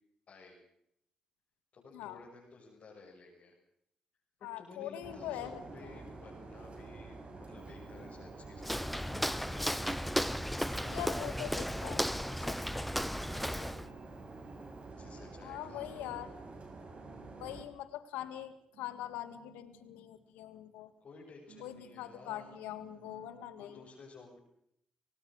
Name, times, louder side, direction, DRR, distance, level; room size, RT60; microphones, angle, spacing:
voice 1, 0.3-0.6 1.7-3.5 4.4-9.5 10.5-11.9 12.3-13.8 14.9-16.3 21.0-22.5 23.6-24.4, left 4 dB, 60° left, -5 dB, 7.3 m, -54 dB
voice 2, 1.9-2.2 4.4-5.9 10.8-12.1 12.5-12.6 15.4-16.3 17.4-20.9 21.6-23.8, left 12 dB, 90° left, 11 dB, 1.9 m, -43 dB
sound 1, 5.0-17.6, right 3 dB, 50° right, 6.5 m, -48 dB
Walk footsteps, 8.6-13.9, equal, 5° left, 1.0 m, -35 dB
sound 2, 13.6-14.9 15.2-15.5 16.4-18.5 18.7-20.9 21.5-23.7, right 7 dB, 85° right, 4.2 m, -62 dB
26.0 x 18.0 x 6.6 m, 0.73 s
supercardioid pair, 55°, 3 cm